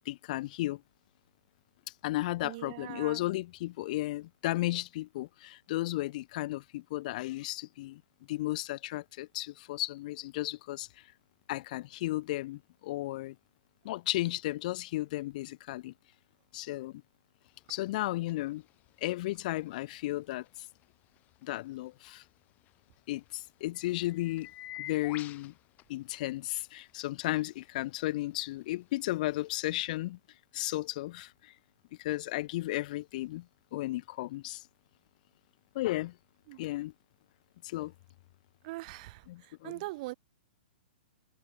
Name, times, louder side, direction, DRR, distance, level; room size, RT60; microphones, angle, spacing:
voice 1, 0.0-0.8 2.0-8.0 8.3-11.0 11.5-13.3 13.8-15.9 16.5-17.0 17.7-18.6 19.0-20.4 21.4-22.2 23.1-24.5 24.8-25.5 25.9-30.2 30.5-31.5 32.0-33.4 33.7-34.6 35.7-36.1 36.6-36.9 37.6-37.9 39.3-39.7, left 17 dB, 50° left, 1.4 m, -34 dB
voice 2, 2.4-3.3 36.5-36.6 38.6-40.1, right 21 dB, 45° right, 4.0 m, -42 dB
sound 1, 17.4-30.0, left 15 dB, 30° left, 4.1 m, -53 dB
hypercardioid pair, 125°, 5 cm